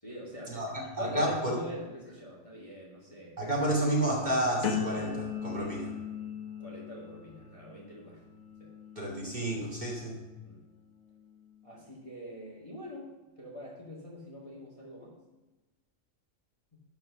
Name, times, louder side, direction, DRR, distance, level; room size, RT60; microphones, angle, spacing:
voice 1, 0.0-3.3 6.6-8.2 8.6-8.7 10.4-10.6 11.6-15.2, equal, 25° left, -5 dB, 2.0 m, -43 dB
voice 2, 1.0-1.5 3.4-5.9 9.0-10.2, right 1 dB, 35° right, -5 dB, 2.8 m, -30 dB
sound 1, 4.6-10.5 11.0-11.4, left 6 dB, 90° left, 1.4 m, -39 dB
12.0 x 4.7 x 6.2 m, 1.1 s
omnidirectional pair, 1.4 m